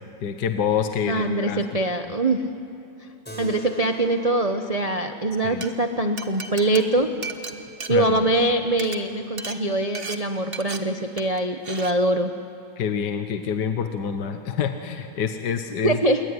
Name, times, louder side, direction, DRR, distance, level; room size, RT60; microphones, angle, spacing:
voice 1, 0.2-1.6 2.1-2.2 5.4-5.6 7.9-8.2 12.8-16.0, left 7 dB, 65° left, 7 dB, 1.6 m, -27 dB
voice 2, 1.1-2.4 3.4-7.1 7.9-12.3 15.8-16.2, right 1 dB, 55° right, 6 dB, 0.4 m, -23 dB
Keyboard (musical), 3.3-8.1, right 1 dB, 5° left, 4.5 m, -44 dB
Glass, 5.4-5.7 6.2-8.5 8.7-9.0 9.4-9.6 10.0-10.2 10.5-10.8 11.2-11.4 11.7-11.9, right 4 dB, 35° right, 1.4 m, -35 dB
27.5 x 22.0 x 9.7 m, 2.8 s
omnidirectional pair, 2.1 m